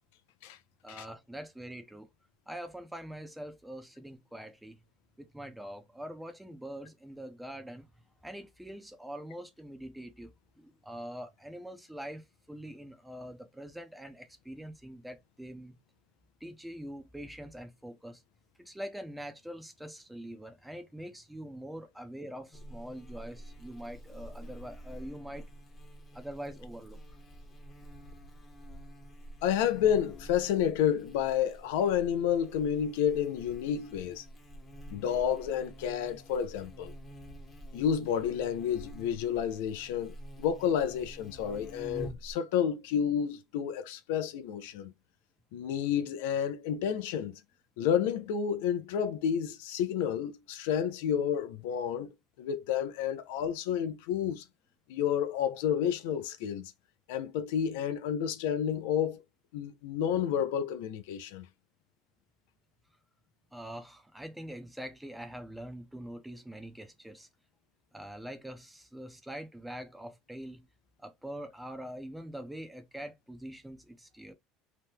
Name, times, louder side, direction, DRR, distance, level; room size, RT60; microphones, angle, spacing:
voice 1, 0.8-2.1 2.5-4.8 5.2-7.9 8.2-15.7 16.4-18.2 18.6-25.5 26.1-27.0 63.5-67.3 67.9-70.7 71.0-74.3, right 1 dB, 5° right, 0.7 m, -44 dB
Buzz, 22.5-42.3, equal, 30° left, 0.9 m, -48 dB
voice 2, 29.4-34.2 34.9-36.9 37.7-44.9 45.5-47.4 47.8-52.1 52.4-54.4 54.9-56.7 57.1-59.2 59.5-61.5, left 9 dB, 80° left, 0.4 m, -30 dB
2.9 x 2.0 x 3.5 m
supercardioid pair, 95°, 0 cm